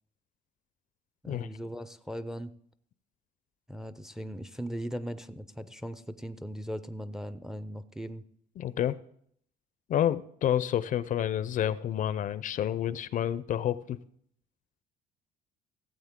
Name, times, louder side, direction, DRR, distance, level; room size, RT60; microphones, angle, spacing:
voice 1, 1.2-2.5 3.7-8.2, equal, 5° right, 12 dB, 0.5 m, -38 dB
voice 2, 8.6-9.0 9.9-14.0, left 10 dB, 50° left, 17 dB, 0.5 m, -29 dB
16.5 x 7.8 x 3.6 m, 0.66 s
cardioid pair, 110°, 17 cm